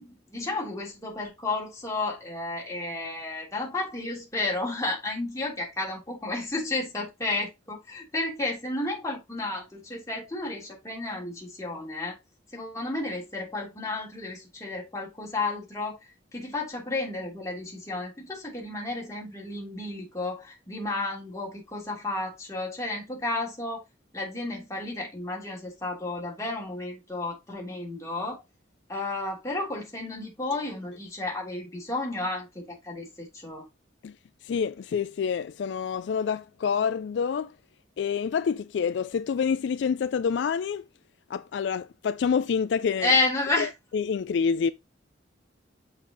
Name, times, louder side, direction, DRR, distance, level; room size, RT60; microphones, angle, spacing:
voice 1, 0.0-12.1 12.5-16.0 16.3-23.8 24.1-28.4 28.9-33.6 43.0-43.7, left 2 dB, 15° left, 3.3 m, -32 dB
voice 2, 34.4-37.5 38.0-40.8 41.3-43.1 43.6-44.7, left 6 dB, 65° left, 0.3 m, -27 dB
6.6 x 5.6 x 3.9 m
head